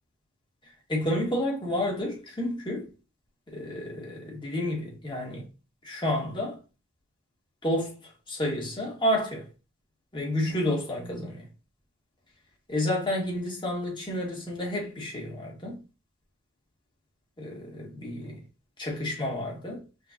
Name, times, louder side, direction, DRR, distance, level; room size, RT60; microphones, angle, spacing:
voice 1, 0.9-2.9 3.5-5.4 5.8-6.6 7.6-7.9 8.3-9.5 10.1-11.5 12.7-15.8 17.4-18.4 18.8-19.8, left 1 dB, 25° left, 1.6 m, -30 dB
5.7 x 3.1 x 2.6 m
head